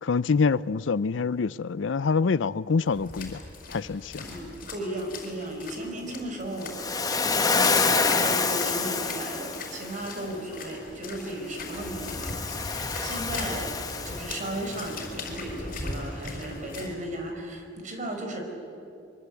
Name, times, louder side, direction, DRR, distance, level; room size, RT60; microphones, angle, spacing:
voice 1, 0.0-3.4 3.7-4.2, left 5 dB, 75° left, 0.5 m, -25 dB
sound 1, 2.8-16.9, left 3 dB, 50° left, 5.0 m, -40 dB
voice 2, 4.2-6.8 7.2-7.4 7.6-13.7 14.0-18.4, right 1 dB, 40° right, 4.5 m, -35 dB
Waves surf, 6.7-9.9 11.7-14.8, left 4 dB, 20° left, 1.3 m, -27 dB
24.0 x 24.0 x 8.2 m
head